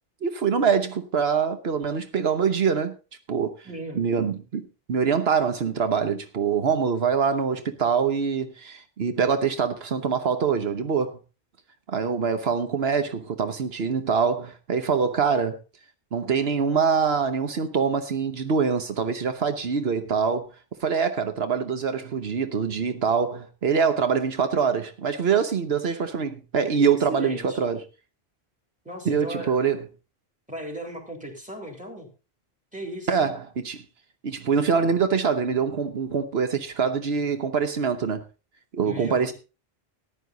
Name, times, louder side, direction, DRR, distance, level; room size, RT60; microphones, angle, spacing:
voice 1, 0.2-2.9 3.3-3.5 4.0-11.2 11.9-15.6 16.1-20.5 20.8-27.8 29.1-29.8 33.1-33.8 34.2-38.2 38.7-39.3, right 6 dB, 80° right, 1.2 m, -24 dB
voice 2, 3.6-4.0 26.7-27.6 28.9-29.6 30.5-32.1 32.7-33.3 38.8-39.3, right 1 dB, 5° right, 3.6 m, -37 dB
14.0 x 10.5 x 3.9 m
omnidirectional pair, 1.0 m